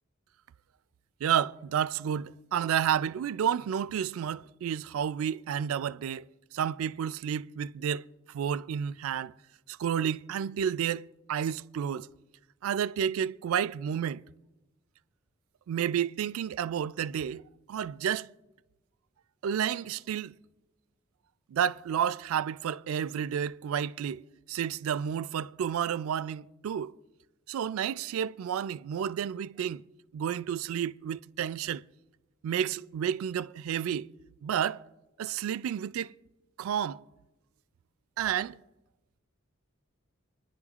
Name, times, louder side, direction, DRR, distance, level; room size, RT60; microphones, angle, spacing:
voice 1, 1.2-9.3 9.7-12.1 12.6-14.2 15.7-17.4 17.7-18.3 19.4-20.3 21.5-27.0 27.5-29.8 30.1-31.8 32.4-34.1 34.4-34.8 35.2-36.1 36.6-37.0 38.2-38.6, right 8 dB, 90° right, 0.3 m, -31 dB
26.0 x 10.5 x 2.4 m
head